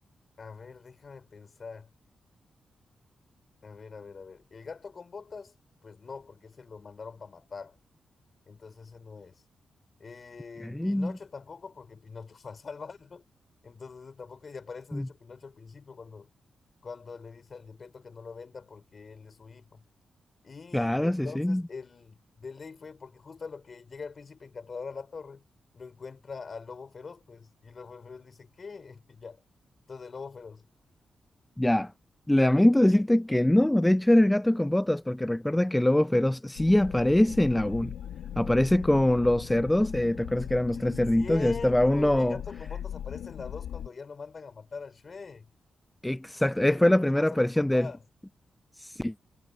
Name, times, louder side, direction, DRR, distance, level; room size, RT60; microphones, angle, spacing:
voice 1, 0.4-1.9 3.6-5.5 5.8-7.8 8.5-9.4 10.0-13.2 13.6-16.3 16.8-19.8 20.4-25.4 25.7-29.4 29.9-30.7 40.7-45.5 46.7-48.0, left 5 dB, 50° left, 4.9 m, -43 dB
voice 2, 10.6-11.1 14.9-15.1 20.7-21.6 31.6-31.9 32.3-37.9 38.4-42.4 46.0-47.9 48.8-49.1, left 1 dB, 10° left, 0.6 m, -23 dB
sound 1, 36.6-43.9, left 9 dB, 90° left, 1.4 m, -39 dB
cardioid pair, 55°, 0 cm